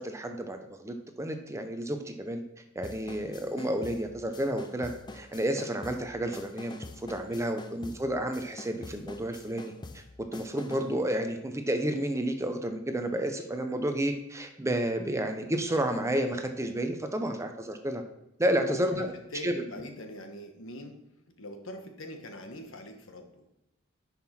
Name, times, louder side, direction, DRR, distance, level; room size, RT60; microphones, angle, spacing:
voice 1, 0.0-2.4 2.8-9.7 10.2-18.0 18.4-19.1 19.4-19.6, right 1 dB, 15° right, 6 dB, 0.7 m, -31 dB
sound 1, 2.8-11.0, left 2 dB, 20° left, 0.5 m, -46 dB
voice 2, 18.5-21.0 21.4-23.4, equal, 70° left, 5 dB, 1.3 m, -42 dB
10.5 x 5.7 x 4.3 m, 0.90 s
head